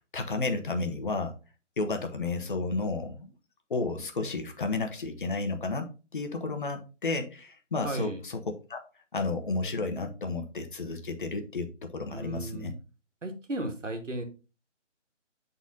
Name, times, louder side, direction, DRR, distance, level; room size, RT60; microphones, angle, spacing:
voice 1, 0.1-1.3 1.8-3.3 3.7-8.4 8.7-8.8 9.1-12.7, left 3 dB, 45° left, 5 dB, 1.0 m, -32 dB
voice 2, 7.8-8.2 12.1-12.7 13.2-14.2, right 1 dB, 80° right, 5 dB, 1.8 m, -34 dB
6.9 x 4.1 x 3.8 m, 0.32 s
figure-of-eight pair, 160°, 37 cm